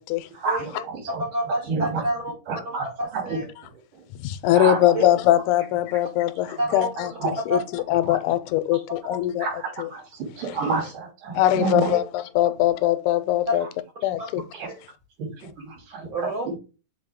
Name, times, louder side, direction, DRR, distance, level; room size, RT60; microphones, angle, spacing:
voice 1, 0.3-2.0 2.5-2.9 3.1-3.4 4.5-5.0 7.2-7.3 8.1-8.2 9.4-11.9 14.5-14.7 15.2-16.1 16.5-16.6, right 4 dB, 90° right, 4.2 m, -29 dB
voice 2, 1.2-2.3 2.7-3.5 4.9-5.0 6.6-6.9 7.5-7.6 9.1-9.2 11.9-12.0 13.5-13.6 16.1-16.5, equal, 50° right, 1.7 m, -28 dB
voice 3, 4.2-9.5 9.8-9.9 11.3-13.7 14.0-14.4, left 13 dB, 85° left, 2.0 m, -22 dB
7.0 x 4.2 x 3.6 m
omnidirectional pair, 3.5 m